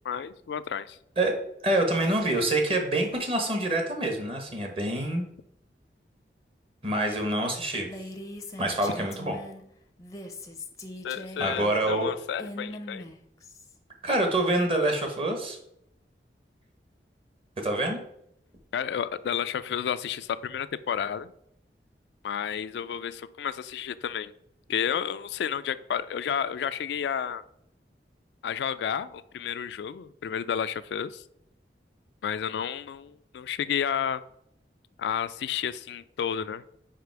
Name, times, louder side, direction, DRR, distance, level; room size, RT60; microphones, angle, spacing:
voice 1, 0.0-1.0 11.0-13.1 18.7-21.3 22.2-24.3 24.7-27.4 28.4-31.2 32.2-34.2 35.0-36.6, left 8 dB, 80° left, 14 dB, 0.3 m, -31 dB
voice 2, 1.6-5.3 6.8-7.9 8.6-9.4 11.4-12.1 14.0-15.6 17.6-18.0, right 1 dB, 30° right, 3 dB, 1.1 m, -26 dB
Female speech woman speaking, 7.8-9.6 10.0-13.7, left 1 dB, 20° left, 0.5 m, -41 dB
5.0 x 4.8 x 4.6 m, 0.76 s
head